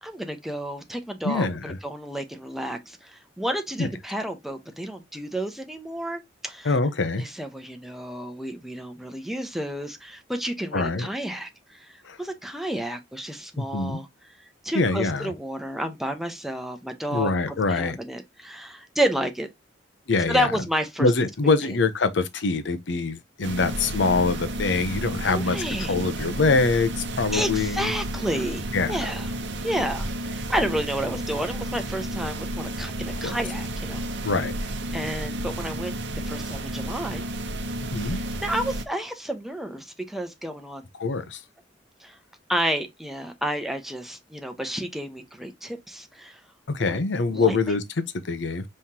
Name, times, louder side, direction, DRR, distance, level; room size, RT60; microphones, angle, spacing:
voice 1, 0.0-6.8 7.2-14.1 14.6-17.3 17.7-19.5 20.3-21.1 21.6-21.8 25.3-26.1 27.3-29.3 29.6-34.0 34.9-36.0 36.2-37.2 38.1-40.8 42.0-42.2 42.5-46.4 46.8-47.0 47.3-47.8, equal, ahead, 0.8 m, -31 dB
voice 2, 1.2-1.8 3.8-3.9 6.6-7.3 10.7-11.1 12.0-12.2 13.6-14.0 14.7-15.3 17.1-18.0 20.1-20.5 21.0-25.6 25.9-27.9 28.7-29.1 33.2-33.4 34.2-34.5 37.9-38.2 41.0-41.4 46.7-47.8 48.3-48.6, left 3 dB, 70° left, 0.7 m, -24 dB
sound 1, 23.4-38.8, right 1 dB, 65° right, 0.8 m, -32 dB
5.6 x 3.2 x 2.8 m
head